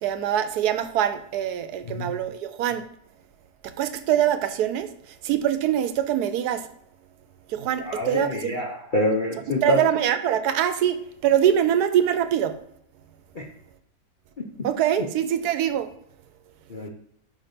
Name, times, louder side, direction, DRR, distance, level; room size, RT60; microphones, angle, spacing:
voice 1, 0.0-2.8 3.8-4.9 5.2-6.7 7.5-8.6 9.6-12.6 14.6-15.9, right 10 dB, 80° right, 10 dB, 1.2 m, -23 dB
voice 2, 1.8-2.2 7.8-9.9 13.3-13.5 15.0-15.1 16.7-16.9, left 1 dB, 40° left, -1 dB, 0.7 m, -26 dB
5.7 x 4.2 x 5.1 m, 0.70 s
omnidirectional pair, 1.7 m